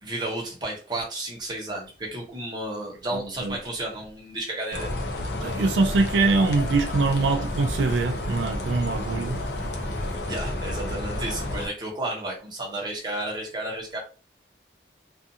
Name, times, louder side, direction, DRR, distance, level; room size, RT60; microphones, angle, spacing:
voice 1, 0.0-4.9 10.3-14.0, right 1 dB, 25° right, 0.8 m, -32 dB
sound 1, 4.7-11.7, left 1 dB, 70° left, 0.5 m, -30 dB
voice 2, 5.4-9.4, right 3 dB, 85° right, 0.3 m, -23 dB
2.5 x 2.4 x 2.7 m
head